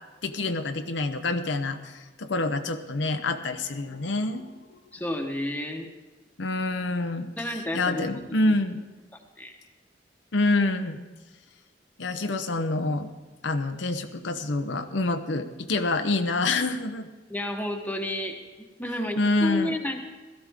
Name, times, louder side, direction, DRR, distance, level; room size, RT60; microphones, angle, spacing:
voice 1, 0.2-4.8 6.4-7.3 7.7-8.8 10.3-11.1 12.0-13.1 13.4-17.1 19.2-19.7, left 2 dB, 80° left, 7 dB, 0.8 m, -27 dB
voice 2, 4.9-5.9 7.4-8.2 9.4-9.5 17.3-20.0, left 1 dB, 10° left, 3 dB, 1.2 m, -31 dB
16.5 x 13.5 x 3.6 m, 1.3 s
head